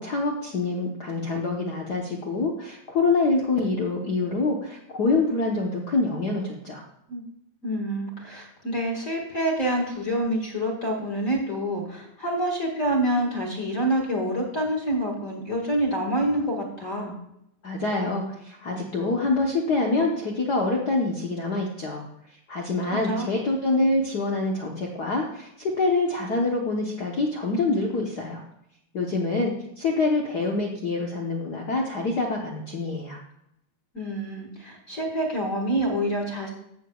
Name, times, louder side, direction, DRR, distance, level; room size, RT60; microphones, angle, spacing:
voice 1, 0.0-6.8 17.6-22.0 22.5-28.4 28.9-33.2, left 3 dB, 70° left, -1 dB, 0.9 m, -26 dB
voice 2, 7.6-17.2 23.1-23.3 33.9-36.5, right 1 dB, 30° left, 0 dB, 1.9 m, -27 dB
15.5 x 6.9 x 2.3 m, 0.79 s
omnidirectional pair, 3.4 m